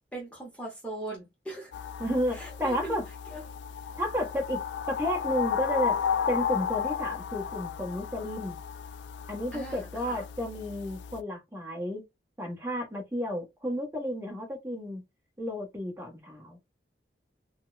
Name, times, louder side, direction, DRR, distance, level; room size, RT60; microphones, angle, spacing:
voice 1, 0.1-1.7 2.3-3.0 3.3-3.4 9.5-10.2, right 1 dB, 5° left, 0.9 m, -39 dB
sound 1, 1.7-11.2, left 7 dB, 80° left, 0.3 m, -34 dB
voice 2, 2.0-3.0 4.0-4.6 4.9-6.0 6.3-8.5 9.3-12.0 12.4-15.0 15.4-16.6, equal, 15° right, 1.4 m, -32 dB
4.2 x 2.3 x 2.5 m
head